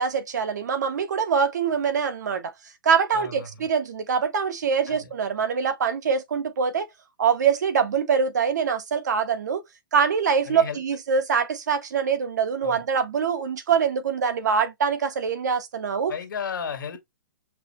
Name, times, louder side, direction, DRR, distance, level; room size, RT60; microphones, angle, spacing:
voice 1, 0.0-2.5 2.8-6.9 7.2-9.6 9.9-16.1, right 6 dB, 55° right, 1.0 m, -24 dB
voice 2, 3.1-3.7 4.9-5.1 10.5-10.8 12.6-12.8 16.1-17.0, left 6 dB, 65° left, 1.5 m, -34 dB
5.5 x 2.1 x 4.1 m
hypercardioid pair, 180°, 11 cm